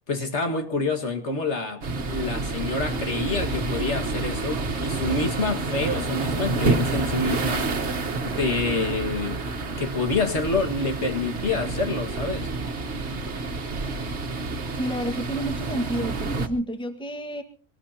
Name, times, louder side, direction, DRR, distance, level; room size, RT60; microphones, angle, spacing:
voice 1, 0.1-1.8 2.1-7.7 8.2-9.4 9.8-12.5, left 3 dB, 60° left, 5 dB, 2.1 m, -27 dB
sound 1, 1.8-16.5, right 3 dB, 60° right, 1.6 m, -28 dB
voice 2, 14.7-17.4, right 1 dB, 5° left, 5 dB, 1.5 m, -30 dB
23.0 x 19.0 x 2.9 m, 0.41 s
omnidirectional pair, 1.3 m